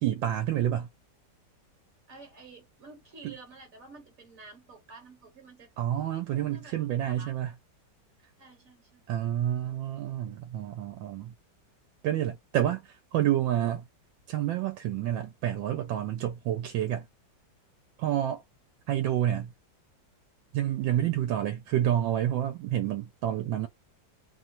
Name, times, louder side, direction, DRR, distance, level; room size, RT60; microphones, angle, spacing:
voice 1, 0.0-0.9 3.2-3.3 5.8-7.5 9.1-11.3 12.0-13.8 14.3-17.1 18.0-18.4 18.9-19.5 20.5-23.7, right 11 dB, 85° right, 1.3 m, -29 dB
voice 2, 2.1-5.7 6.3-7.4 8.4-9.1, right 3 dB, 50° right, 1.3 m, -51 dB
3.1 x 2.3 x 2.6 m
omnidirectional pair, 2.1 m